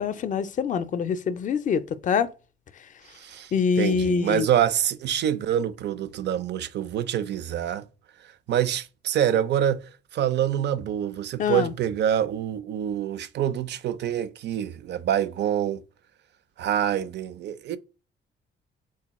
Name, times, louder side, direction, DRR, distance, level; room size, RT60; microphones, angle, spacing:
voice 1, 0.0-2.3 3.5-4.5 11.4-11.7, left 6 dB, 40° left, 0.4 m, -25 dB
voice 2, 3.1-3.5 3.8-7.9 8.5-9.8 10.1-15.8 16.6-17.8, right 10 dB, 60° right, 0.4 m, -26 dB
3.7 x 2.2 x 4.0 m
cardioid pair, 90°, 20 cm